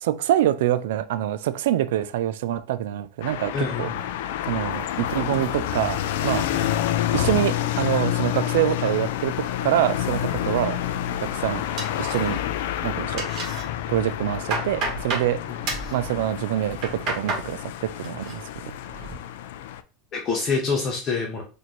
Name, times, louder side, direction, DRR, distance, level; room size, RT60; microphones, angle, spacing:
voice 1, 0.0-3.9 4.5-6.5 7.1-10.8 11.2-11.6 12.0-12.4 12.8-13.3 13.9-15.4 15.9-18.4, right 12 dB, 85° right, 0.3 m, -25 dB
sound 1, 3.2-19.8, left 11 dB, 80° left, 0.3 m, -28 dB
voice 2, 3.5-4.0 6.5-6.7 15.5-15.6 20.1-21.4, left 4 dB, 30° left, 0.7 m, -26 dB
sound 2, 11.8-12.6 12.9-13.6 14.1-15.3 15.7-15.9 16.6-17.5 17.8-18.3 18.7-19.2, right 3 dB, 40° right, 1.4 m, -31 dB
4.3 x 2.6 x 3.0 m
supercardioid pair, 155°, 0 cm